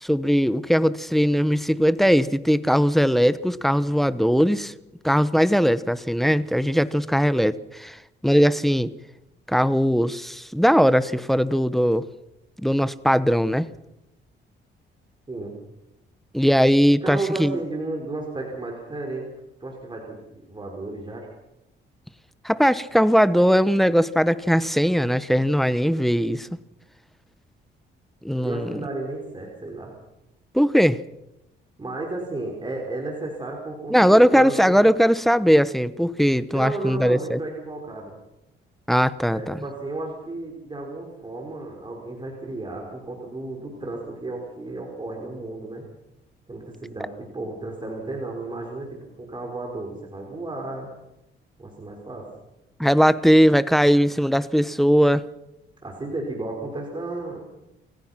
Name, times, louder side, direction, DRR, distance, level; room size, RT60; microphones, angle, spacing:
voice 1, 0.0-4.7 5.0-8.0 8.2-8.9 9.5-12.1 12.6-13.7 16.3-17.6 22.4-26.5 28.2-28.7 30.5-31.0 33.9-37.4 38.9-39.6 52.8-55.2, equal, ahead, 15 dB, 1.0 m, -19 dB
voice 2, 17.0-19.3 19.6-20.2 20.5-21.3 28.4-29.9 31.8-34.8 36.5-38.1 39.3-45.8 46.5-50.9 51.6-52.3 55.8-57.4, right 2 dB, 25° right, 0 dB, 5.1 m, -33 dB
29.0 x 15.5 x 5.9 m, 0.88 s
cardioid pair, 90°, 20 cm